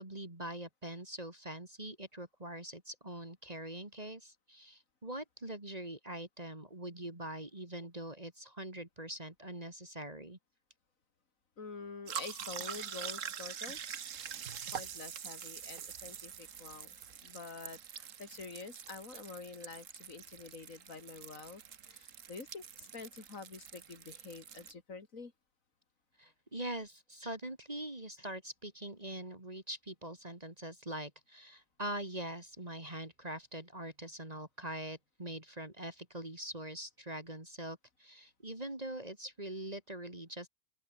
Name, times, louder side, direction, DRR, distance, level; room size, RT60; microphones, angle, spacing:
voice 1, 0.0-10.4 26.2-40.5, right 1 dB, 30° right, 3.2 m, -43 dB
voice 2, 11.6-13.8 14.7-17.0 17.2-21.6 21.9-25.3, left 4 dB, 90° left, 3.0 m, -47 dB
sound 1, 12.1-24.7, right 8 dB, 75° right, 1.5 m, -45 dB
open air
omnidirectional pair, 1.4 m